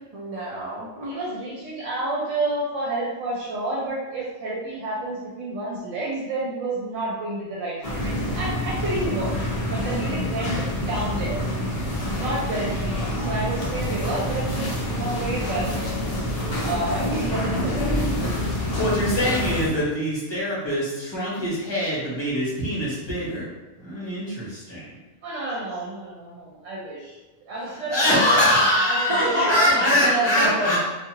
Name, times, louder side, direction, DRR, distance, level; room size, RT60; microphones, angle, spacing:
voice 1, 0.1-1.1 29.1-30.8, right 1 dB, 45° right, -8 dB, 0.5 m, -26 dB
voice 2, 1.0-9.4 9.7-11.4 12.2-15.7 16.6-18.9 25.2-27.1 27.5-27.9 28.3-30.1, right 2 dB, 75° right, -5 dB, 1.0 m, -30 dB
sound 1, 7.8-19.7, equal, 55° left, 0.4 m, -27 dB
voice 3, 18.7-23.5 23.8-24.9 27.7-30.8, left 1 dB, 25° left, -8 dB, 1.0 m, -23 dB
2.7 x 2.4 x 2.7 m, 1.2 s
omnidirectional pair, 1.3 m